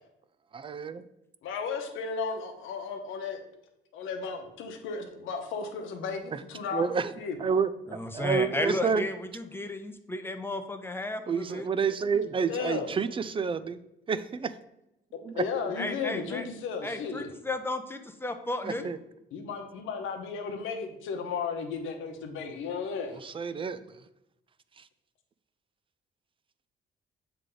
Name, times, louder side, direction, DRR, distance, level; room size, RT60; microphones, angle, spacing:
voice 1, 0.5-1.0 6.3-6.4 6.7-7.1 7.4-9.0 11.3-13.8 14.1-14.5 15.2-15.4 18.6-19.0 23.2-24.0 24.8-24.9, right 6 dB, 25° right, 13 dB, 0.4 m, -29 dB
voice 2, 1.4-3.4 3.9-6.9 7.2-7.4 12.5-12.9 15.3-17.3 18.8-18.9 19.3-23.2, left 5 dB, 90° left, 4 dB, 0.9 m, -34 dB
voice 3, 7.9-11.7 15.8-16.4 16.8-18.8, left 2 dB, 10° left, 7 dB, 0.6 m, -33 dB
7.5 x 3.3 x 3.8 m, 0.88 s
cardioid pair, 90°, 20 cm